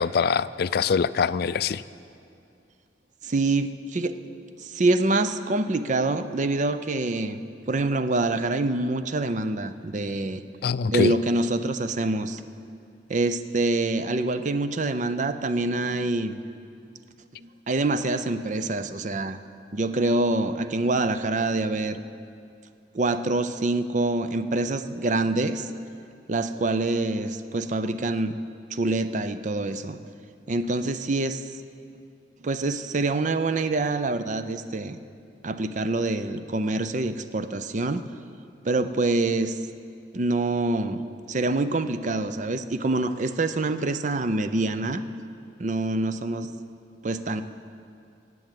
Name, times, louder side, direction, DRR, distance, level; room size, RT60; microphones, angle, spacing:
voice 1, 0.0-1.8 10.6-11.1, left 6 dB, 55° left, 16 dB, 0.3 m, -24 dB
voice 2, 3.2-4.2 4.6-7.4 7.7-10.4 10.9-12.4 13.1-16.4 17.4-19.4 19.7-22.0 22.9-25.7 26.3-28.4 28.7-30.0 30.5-31.4 32.4-35.0 35.4-38.0 38.6-39.6 40.1-41.0 41.3-45.0 45.6-46.5 47.0-47.4, right 2 dB, 40° right, 11 dB, 0.5 m, -26 dB
18.5 x 7.8 x 7.6 m, 2.4 s
head